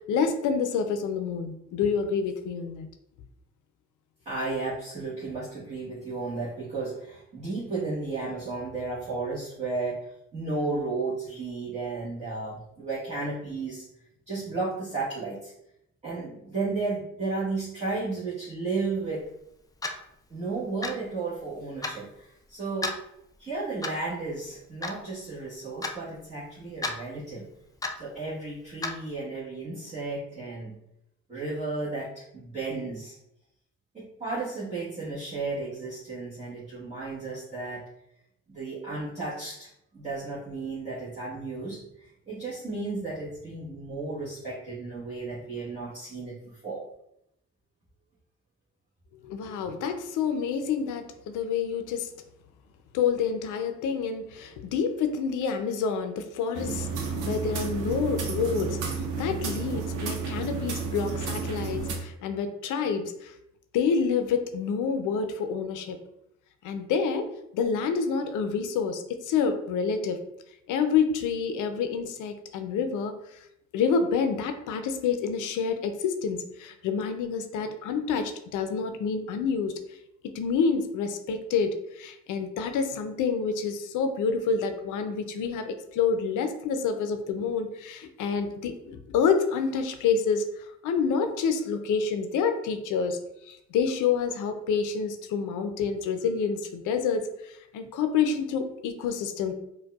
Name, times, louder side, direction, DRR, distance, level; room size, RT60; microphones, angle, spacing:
voice 1, 0.1-2.9 49.2-52.1 52.9-63.3 63.7-66.0 66.6-67.3 67.5-70.2 70.7-73.4 73.7-79.7 80.3-93.2 93.5-99.5, left 6 dB, 85° left, 7 dB, 0.5 m, -28 dB
voice 2, 4.2-13.8 14.3-15.5 16.0-19.3 20.3-22.9 23.4-27.5 28.0-30.8 31.3-33.2 33.9-37.8 38.5-46.8, right 3 dB, 25° right, -10 dB, 1.1 m, -33 dB
Clock, 19.8-20.0 20.8-21.0 21.8-22.0 22.8-23.0 23.8-24.1 24.8-25.0 25.8-26.0 26.8-27.0 27.8-28.0 28.8-29.0, left 3 dB, 15° left, 0.3 m, -31 dB
sound 1, 56.5-62.0, right 5 dB, 85° right, 0.7 m, -31 dB
4.5 x 2.2 x 2.3 m, 0.80 s
cardioid pair, 90°, 30 cm